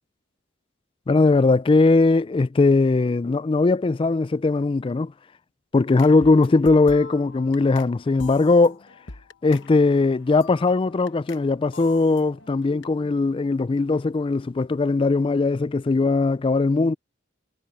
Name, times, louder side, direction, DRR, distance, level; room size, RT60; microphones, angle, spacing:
voice 1, 1.1-5.1 5.7-8.8 9.4-16.9, left 3 dB, 25° left, 0.3 m, -19 dB
sound 1, 6.0-11.5 11.7-12.9, left 3 dB, 60° left, 1.1 m, -44 dB
head